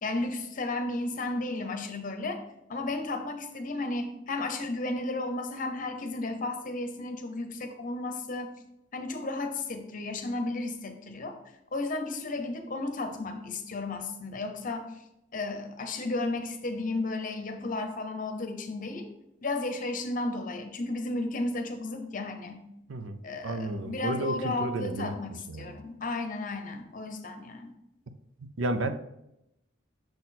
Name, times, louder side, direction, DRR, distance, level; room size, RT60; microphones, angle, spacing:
voice 1, 0.0-2.4 2.7-8.5 8.9-11.4 11.7-14.9 15.3-19.1 19.4-22.6 23.2-27.7, left 2 dB, 45° left, 6 dB, 0.8 m, -33 dB
voice 2, 22.9-25.1 25.5-25.8 28.6-28.9, right 1 dB, 80° right, 9 dB, 0.6 m, -32 dB
6.5 x 4.2 x 4.2 m, 0.83 s
head